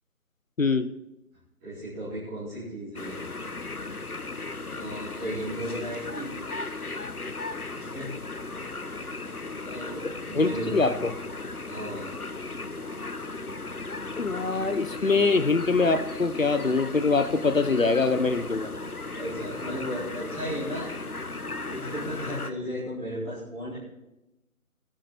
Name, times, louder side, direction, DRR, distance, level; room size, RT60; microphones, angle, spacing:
voice 1, 0.6-0.9 10.3-11.1 14.2-18.7, left 4 dB, 65° left, 11 dB, 0.9 m, -24 dB
voice 2, 1.6-3.1 4.7-6.3 7.7-8.1 8.8-9.3 9.6-11.2 11.6-12.1 19.1-20.9 21.7-23.8, equal, 5° right, -15 dB, 1.6 m, -35 dB
sound 1, 3.0-22.5, left 3 dB, 85° left, 1.2 m, -36 dB
19.0 x 10.0 x 4.3 m, 0.95 s
figure-of-eight pair, 160°, 43 cm